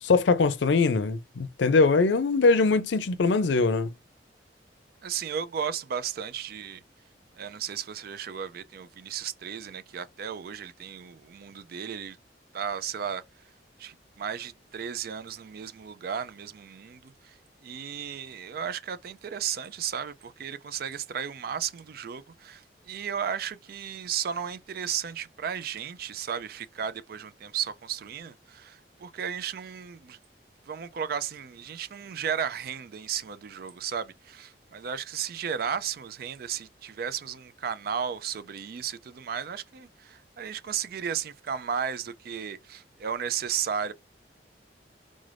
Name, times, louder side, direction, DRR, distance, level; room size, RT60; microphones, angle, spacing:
voice 1, 0.0-3.9, left 4 dB, 85° left, 0.5 m, -22 dB
voice 2, 5.0-6.8 7.4-12.2 12.5-13.2 13.8-30.2 30.7-43.9, right 7 dB, 55° right, 0.4 m, -34 dB
3.7 x 2.5 x 3.3 m
head